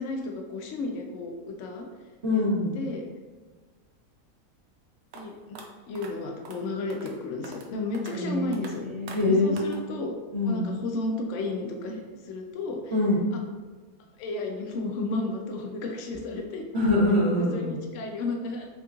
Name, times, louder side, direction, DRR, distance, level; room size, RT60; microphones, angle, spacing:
voice 1, 0.0-1.9 2.3-2.4 2.7-3.1 5.1-5.6 5.9-8.9 9.3-10.1 10.4-12.9 13.3-13.4 14.2-16.6 17.4-18.7, left 2 dB, 70° left, 2 dB, 0.7 m, -33 dB
voice 2, 2.2-2.8 8.1-8.5 8.9-9.7 10.3-10.6 12.9-13.2 16.7-17.8, left 2 dB, 45° right, -11 dB, 1.5 m, -24 dB
sound 1, 5.1-5.2 5.5-5.6 5.9-6.1 6.4-6.6 6.9-7.1 7.4-7.7 7.9-8.1 8.5-8.7 9.1-9.2 9.6-9.8, right 4 dB, 70° right, 0.6 m, -43 dB
6.0 x 3.0 x 2.3 m, 1.4 s
omnidirectional pair, 1.7 m